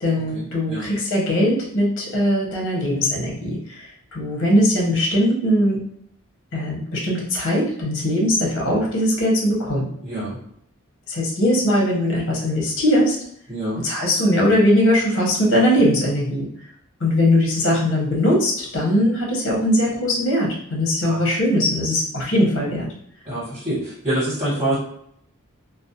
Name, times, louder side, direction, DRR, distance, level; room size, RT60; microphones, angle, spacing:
voice 1, 0.0-5.8 6.5-9.9 11.1-13.2 13.8-16.5 17.0-22.9, equal, 60° left, -2 dB, 0.8 m, -20 dB
voice 2, 13.5-13.8 21.1-21.2 23.3-23.8 24.0-24.8, right 1 dB, 20° right, -11 dB, 1.2 m, -25 dB
2.4 x 2.0 x 2.7 m, 0.69 s
head